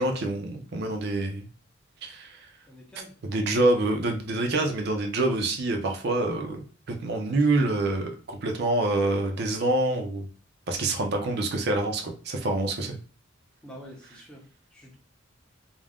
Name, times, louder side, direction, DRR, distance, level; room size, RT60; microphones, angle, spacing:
voice 1, 0.0-1.5 2.0-2.4 3.2-10.3 10.7-13.0, right 2 dB, 55° right, 3 dB, 0.5 m, -26 dB
voice 2, 2.7-3.2 13.6-15.0, equal, 5° left, 0 dB, 0.6 m, -47 dB
2.4 x 2.1 x 3.4 m, 0.38 s
head